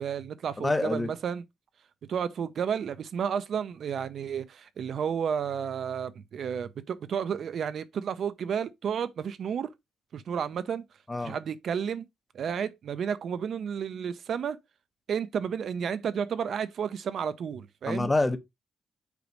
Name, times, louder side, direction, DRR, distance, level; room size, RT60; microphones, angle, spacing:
voice 1, 0.0-1.4 2.1-9.7 10.1-10.8 11.2-12.1 12.3-14.6 15.1-18.1, right 7 dB, 60° right, 0.6 m, -32 dB
voice 2, 0.6-1.1 11.1-11.4 17.9-18.4, left 2 dB, 15° left, 1.0 m, -26 dB
8.3 x 3.0 x 5.2 m
cardioid pair, 125°, 0 cm